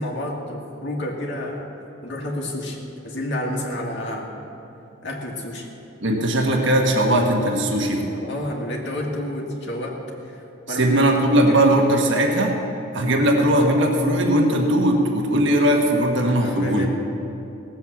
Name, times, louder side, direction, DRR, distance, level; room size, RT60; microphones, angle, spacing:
voice 1, 0.0-1.7 2.0-2.8 3.0-4.4 5.0-5.7 8.1-10.0 10.3-11.0 11.3-11.8 16.4-16.9, left 1 dB, 55° left, -1 dB, 1.9 m, -30 dB
voice 2, 6.0-8.1 10.7-12.6 12.9-16.9, right 1 dB, 60° right, 1 dB, 1.5 m, -19 dB
18.0 x 7.6 x 7.2 m, 2.9 s
head